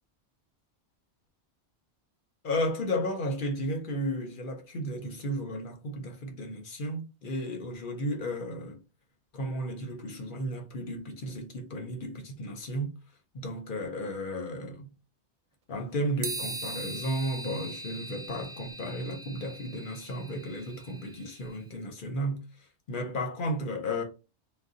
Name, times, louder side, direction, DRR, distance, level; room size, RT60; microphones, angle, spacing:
voice 1, 2.4-8.8 9.3-12.9 13.3-14.9 15.7-22.4 22.9-24.0, equal, 55° left, 0.7 m, -33 dB
sound 1, 16.2-21.5, right 2 dB, 65° right, 0.3 m, -40 dB
2.6 x 2.1 x 3.6 m
omnidirectional pair, 1.2 m